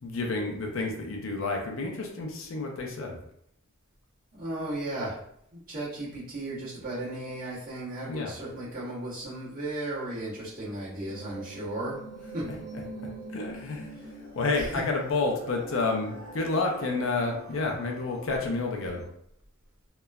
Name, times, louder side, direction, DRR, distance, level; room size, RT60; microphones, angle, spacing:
voice 1, 0.0-3.2 8.1-8.3 12.4-12.8 13.3-13.9 14.4-19.0, left 3 dB, 70° left, 1 dB, 0.5 m, -30 dB
voice 2, 4.3-5.2 5.5-12.0 12.3-12.4 13.9-14.1 14.5-14.8, right 1 dB, 40° right, -9 dB, 1.2 m, -35 dB
sound 1, 11.1-19.1, right 2 dB, 80° right, 0.8 m, -44 dB
2.9 x 2.1 x 2.3 m, 0.72 s
head